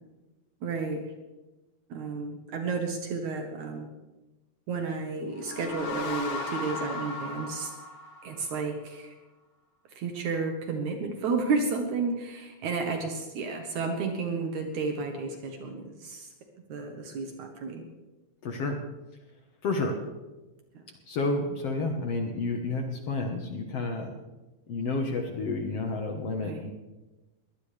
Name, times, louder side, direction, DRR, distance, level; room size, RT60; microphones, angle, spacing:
voice 1, 0.6-1.1 1.9-3.9 4.7-7.7 8.2-9.1 9.9-16.3 16.7-17.8 20.7-20.8 26.4-26.7, right 4 dB, 70° right, 4 dB, 2.7 m, -32 dB
sound 1, 5.2-8.8, left 2 dB, 75° left, 3.1 m, -36 dB
voice 2, 18.4-18.8 19.6-19.9 21.1-24.1 24.7-26.7, left 3 dB, 55° left, 3 dB, 2.2 m, -30 dB
22.0 x 17.5 x 3.4 m, 1.1 s
omnidirectional pair, 3.6 m